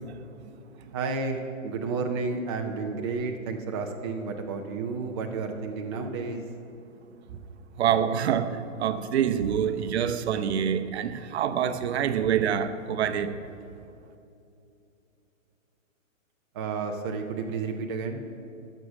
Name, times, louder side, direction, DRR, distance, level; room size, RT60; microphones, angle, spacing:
voice 1, 0.9-6.4 16.5-18.2, right 4 dB, 20° right, 0.4 m, -31 dB
voice 2, 7.8-13.4, right 8 dB, 55° right, 0.8 m, -26 dB
15.0 x 6.4 x 6.1 m
hypercardioid pair, 140°, 40 cm